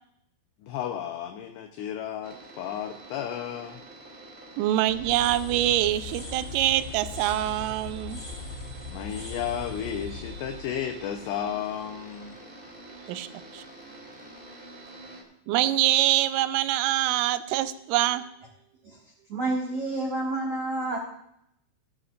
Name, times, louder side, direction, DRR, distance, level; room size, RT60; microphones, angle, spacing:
voice 1, 0.6-3.8 8.9-12.4, left 9 dB, 75° left, 5 dB, 2.7 m, -33 dB
sound 1, 2.2-15.2, right 2 dB, 20° right, 1.3 m, -47 dB
voice 2, 4.6-8.2 13.1-13.3 13.5-13.6 15.5-18.2, right 13 dB, 90° right, 12 dB, 3.1 m, -24 dB
sound 2, 4.9-11.7, left 3 dB, 20° left, 2.6 m, -40 dB
voice 3, 19.3-21.0, right 2 dB, 70° right, -2 dB, 1.4 m, -29 dB
16.5 x 13.0 x 2.5 m, 0.77 s
omnidirectional pair, 5.5 m